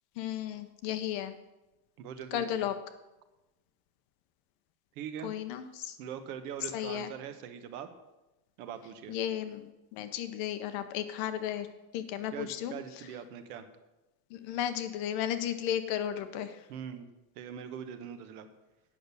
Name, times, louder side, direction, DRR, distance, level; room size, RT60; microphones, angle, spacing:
voice 1, 0.2-1.3 2.3-2.7 5.2-6.0 6.7-7.1 9.1-11.7 11.9-12.7 14.3-16.6, left 10 dB, 50° left, 9 dB, 0.9 m, -34 dB
voice 2, 2.0-2.7 5.0-5.3 6.0-7.9 8.6-9.2 12.3-13.6 16.7-17.1 17.4-18.5, right 8 dB, 70° right, 9 dB, 1.1 m, -42 dB
8.7 x 6.4 x 6.8 m, 1.0 s
cardioid pair, 170°, 48 cm